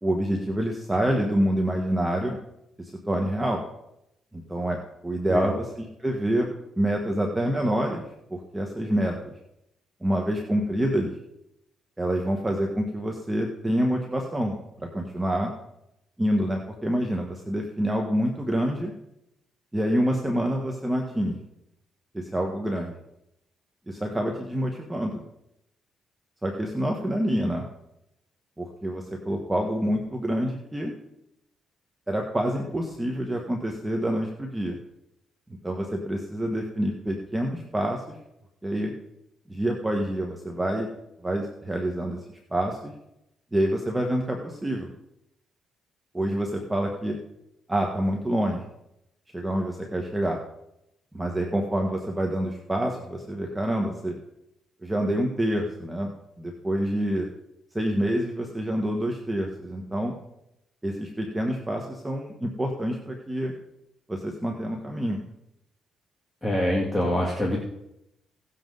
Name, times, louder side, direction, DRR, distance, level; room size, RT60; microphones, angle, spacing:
voice 1, 0.0-2.4 2.8-3.6 4.3-4.8 5.0-6.5 6.8-8.0 8.3-9.3 10.0-11.1 12.0-14.6 14.9-15.5 16.2-18.9 19.7-21.4 22.1-22.9 23.9-25.2 26.4-27.7 28.6-30.9 32.1-34.8 35.6-38.2 38.6-38.9 39.5-40.9 41.2-42.2 42.5-42.9 43.5-44.9 46.1-47.2 47.7-48.6 49.3-50.4 51.1-54.2 54.8-56.1 56.4-57.3 57.7-60.1 60.8-63.5 64.1-65.2, right 1 dB, 15° right, 1 dB, 1.5 m, -27 dB
voice 2, 66.4-67.6, equal, 10° left, -4 dB, 2.4 m, -25 dB
17.5 x 7.5 x 4.0 m, 0.85 s
cardioid pair, 90°, 0 cm